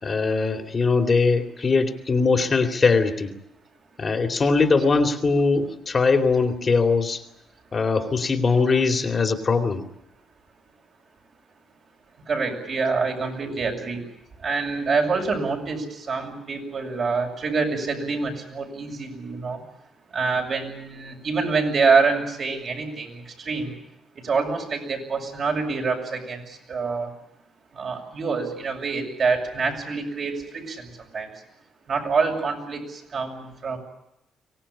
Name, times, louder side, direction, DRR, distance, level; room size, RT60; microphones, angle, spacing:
voice 1, 0.0-3.3 4.0-7.2 7.7-9.9, left 4 dB, 35° left, 4 dB, 2.7 m, -21 dB
voice 2, 12.3-14.0 14.4-19.6 20.1-23.8 24.2-26.4 26.7-27.1 27.8-30.9 31.1-31.3 31.9-33.8, right 4 dB, 50° right, 3 dB, 7.3 m, -26 dB
24.0 x 18.5 x 9.9 m, 0.84 s
cardioid pair, 90°, 0 cm